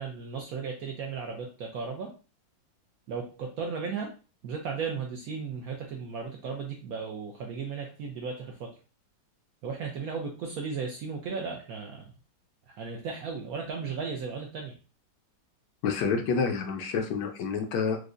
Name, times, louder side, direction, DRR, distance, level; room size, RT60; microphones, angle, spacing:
voice 1, 0.0-2.1 3.1-4.1 4.4-8.8 9.6-12.0 12.8-14.7, right 5 dB, 75° right, 1 dB, 0.8 m, -35 dB
voice 2, 15.8-18.0, left 5 dB, 75° left, 5 dB, 1.1 m, -28 dB
4.6 x 2.1 x 2.5 m, 0.35 s
omnidirectional pair, 2.0 m